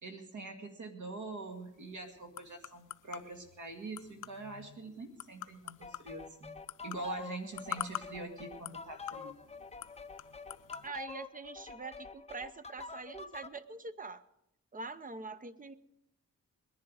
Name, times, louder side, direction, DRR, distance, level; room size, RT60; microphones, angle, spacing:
voice 1, 0.0-6.6 6.8-9.3, right 2 dB, 70° right, 4 dB, 2.2 m, -44 dB
sound 1, 1.4-10.9, left 12 dB, 80° left, 0.5 m, -47 dB
sound 2, 5.8-13.6, left 5 dB, 20° left, 0.6 m, -47 dB
voice 2, 10.8-14.2 14.7-15.7, right 4 dB, 25° right, 13 dB, 0.7 m, -44 dB
20.5 x 10.5 x 4.9 m, 0.79 s
wide cardioid pair, 130°, 31 cm